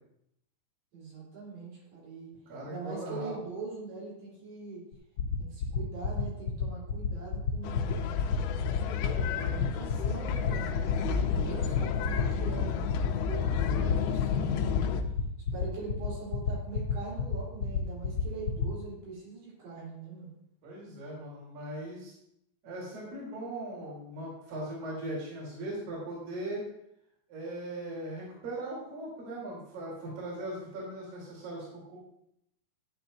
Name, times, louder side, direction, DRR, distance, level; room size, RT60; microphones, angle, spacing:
voice 1, 0.9-2.3 2.7-4.8 5.4-8.3 9.3-14.7 15.5-20.4, right 4 dB, 70° right, -5 dB, 5.8 m, -42 dB
voice 2, 2.5-3.3 11.1-11.8 20.6-22.1 22.6-26.6 27.3-32.0, right 1 dB, 50° right, -6 dB, 4.9 m, -39 dB
sound 1, 4.9-18.7, left 8 dB, 55° left, 2.0 m, -29 dB
sound 2, 7.6-15.0, left 7 dB, 90° left, 2.3 m, -31 dB
12.5 x 10.5 x 2.7 m, 0.77 s
omnidirectional pair, 5.2 m